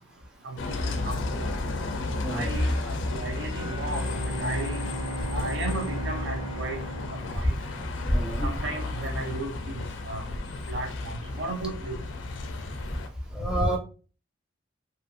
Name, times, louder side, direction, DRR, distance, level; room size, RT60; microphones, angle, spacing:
voice 1, 0.4-1.5 2.3-4.8 5.3-6.8 7.1-7.5 8.4-10.2 10.7-12.0, right 2 dB, 65° right, 0.6 m, -35 dB
Bus, 0.6-13.1, left 2 dB, 75° left, 0.4 m, -32 dB
Bowed string instrument, 3.4-8.2, right 2 dB, 85° right, 1.2 m, -37 dB
voice 2, 8.1-8.5 13.3-13.8, equal, 5° right, 0.6 m, -26 dB
2.8 x 2.4 x 2.5 m
head